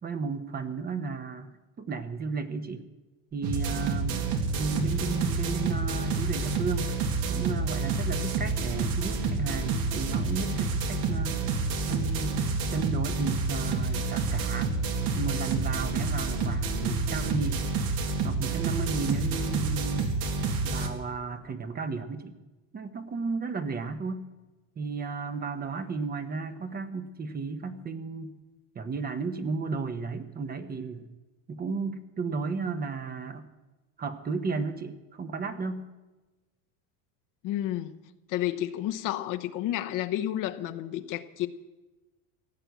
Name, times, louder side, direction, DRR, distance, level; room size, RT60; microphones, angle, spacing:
voice 1, 0.0-2.8 3.3-4.2 4.6-6.9 7.3-11.4 11.9-14.7 15.1-17.7 18.2-20.1 20.6-22.4 22.7-24.3 24.8-28.3 28.7-31.1 31.5-33.5 34.0-35.9, right 4 dB, 25° right, 9 dB, 1.0 m, -34 dB
sound 1, 3.4-20.9, right 3 dB, 70° right, 2.2 m, -28 dB
voice 2, 37.4-37.9 38.3-41.5, left 13 dB, 55° left, 8 dB, 1.0 m, -31 dB
16.0 x 8.9 x 8.2 m, 1.1 s
supercardioid pair, 130°, 39 cm